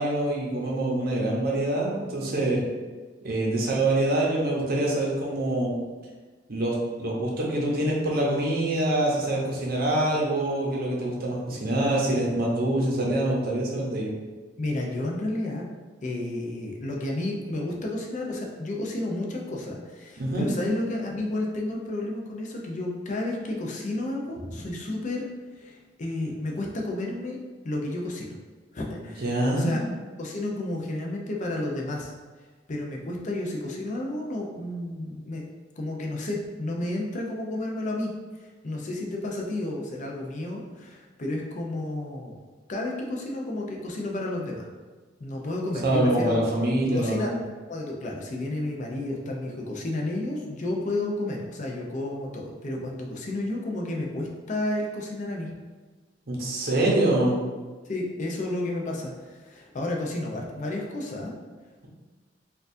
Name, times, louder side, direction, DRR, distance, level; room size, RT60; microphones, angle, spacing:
voice 1, 0.0-2.6 3.2-5.8 6.5-14.1 20.2-20.5 29.2-29.8 45.8-47.3 56.3-57.4, right 1 dB, 55° right, -3 dB, 0.8 m, -25 dB
voice 2, 14.6-15.7 16.0-25.3 25.5-27.4 27.6-28.3 28.7-29.8 30.2-32.1 32.7-35.4 35.8-38.1 38.4-42.4 42.7-44.7 45.2-46.4 46.9-47.3 47.7-55.5 57.9-61.4, left 1 dB, 40° left, -1 dB, 0.5 m, -31 dB
4.4 x 2.4 x 2.6 m, 1.3 s
head